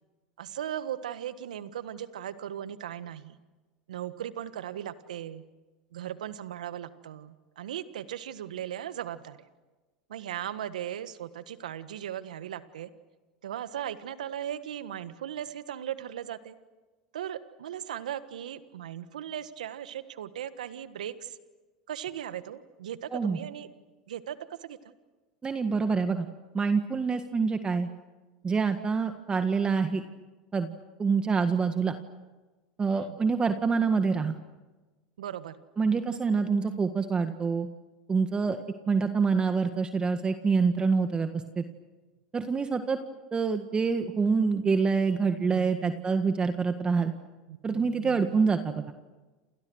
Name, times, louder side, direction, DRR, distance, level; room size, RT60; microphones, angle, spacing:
voice 1, 0.4-3.4 3.9-5.4 5.9-9.4 10.1-12.9 13.4-16.5 17.1-21.3 21.9-23.7 24.1-24.4 24.6-24.9 32.9-33.2 35.2-35.6 45.2-45.9 47.5-48.5, right 10 dB, 80° right, 13 dB, 1.5 m, -38 dB
voice 2, 25.4-26.3 26.5-27.9 28.4-30.0 30.5-30.7 31.0-31.9 32.8-34.3 35.8-37.7 38.1-38.6 38.9-41.6 42.3-43.0 43.3-47.1 47.6-48.9, right 5 dB, 25° right, 8 dB, 1.7 m, -26 dB
29.0 x 28.5 x 6.4 m, 1.2 s
hypercardioid pair, 90°, 4 cm